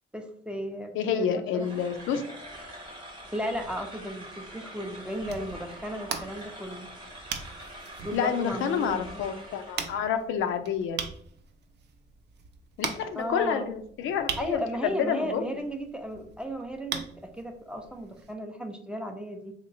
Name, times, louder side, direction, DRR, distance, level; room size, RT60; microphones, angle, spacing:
voice 1, 0.1-1.8 3.3-6.9 8.0-9.2 13.1-13.7 14.4-19.5, equal, 5° right, 4 dB, 0.4 m, -35 dB
voice 2, 0.9-2.2 8.1-11.0 12.8-14.6 15.0-15.5, left 7 dB, 80° left, 7 dB, 0.4 m, -29 dB
sound 1, 1.6-10.0, equal, 25° right, 0.9 m, -44 dB
sound 2, 5.1-18.3, right 6 dB, 60° right, 0.5 m, -41 dB
3.2 x 2.9 x 2.6 m, 0.63 s
cardioid pair, 90°, 20 cm